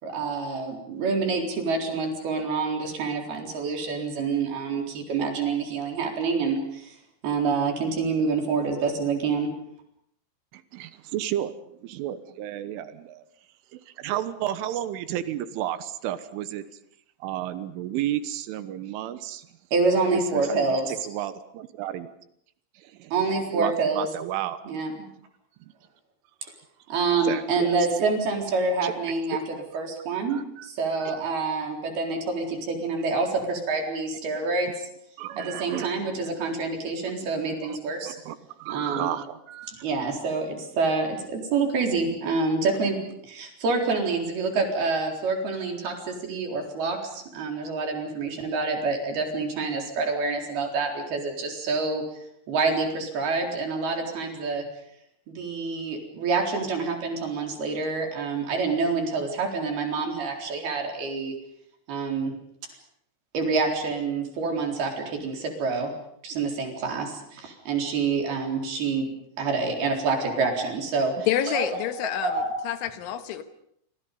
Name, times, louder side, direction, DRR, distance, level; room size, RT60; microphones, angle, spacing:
voice 1, 0.0-6.9 7.2-9.5 19.7-20.9 23.1-24.1 24.7-24.9 26.9-34.9 35.4-38.2 38.7-39.1 39.7-43.0 43.2-52.0 52.5-54.6 55.3-61.3 61.9-62.3 63.3-65.9 66.2-69.1 69.4-71.1 71.5-71.7 72.0-72.5, right 4 dB, 55° right, 2 dB, 5.8 m, -27 dB
voice 2, 10.5-11.5 11.8-13.2 13.7-16.7 17.2-19.5 20.1-20.8 21.1-22.1 22.8-23.1 23.5-24.6 25.6-25.7 26.4-26.5 27.2-27.8 28.8-28.9 30.3-30.7 31.0-31.2 35.2-35.9 37.6-37.8 38.0-39.8, right 12 dB, 80° right, 12 dB, 3.6 m, -32 dB
voice 3, 71.3-73.4, left 11 dB, 75° left, 9 dB, 3.7 m, -28 dB
29.5 x 25.5 x 5.5 m, 0.70 s
omnidirectional pair, 5.6 m